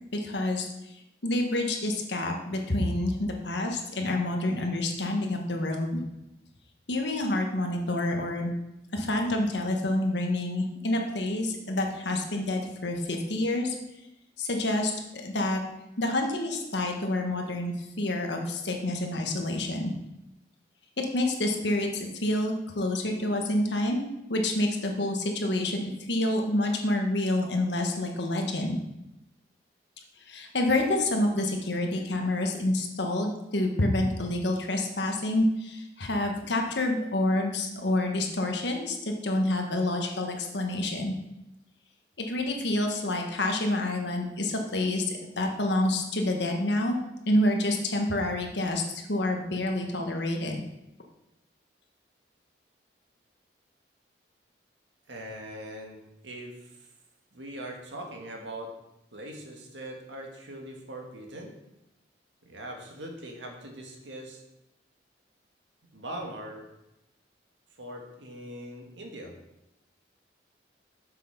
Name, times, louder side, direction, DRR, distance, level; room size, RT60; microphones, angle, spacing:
voice 1, 0.1-0.7 1.2-6.0 6.9-8.5 8.9-13.7 14.4-15.6 16.0-19.9 21.0-28.8 30.2-41.1 42.2-47.0 47.3-48.8 49.1-50.6, left 1 dB, 70° left, 2 dB, 1.5 m, -28 dB
voice 2, 55.1-56.9 57.3-58.7 59.1-61.5 62.4-64.4 65.9-66.6 67.8-69.3, right 1 dB, 80° right, 1 dB, 1.8 m, -41 dB
7.5 x 6.4 x 5.8 m, 0.91 s
head